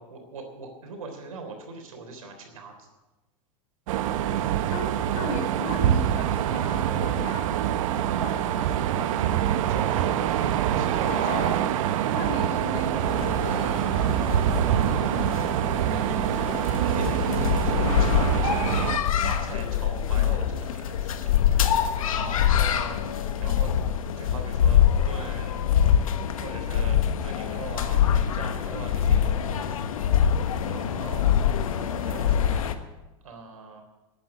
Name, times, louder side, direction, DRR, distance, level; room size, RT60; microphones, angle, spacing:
voice 1, 0.0-2.9 9.5-10.4 10.8-11.7 16.7-17.1 17.6-17.7 18.0-18.7 19.2-21.3 22.1-23.7 24.1-25.6 26.4-29.7 30.5-31.4 31.9-32.7 33.2-33.8, right 4 dB, 90° right, 4 dB, 3.5 m, -41 dB
sound 1, 3.9-19.0, right 11 dB, 70° right, 1.0 m, -25 dB
voice 2, 4.1-8.9 11.0-11.6 12.1-15.1 22.1-22.7, left 2 dB, 50° left, -4 dB, 4.5 m, -37 dB
sound 2, 13.0-32.7, left 9 dB, 85° left, 1.2 m, -25 dB
13.5 x 8.9 x 8.8 m, 1.1 s
hypercardioid pair, 105°, 17 cm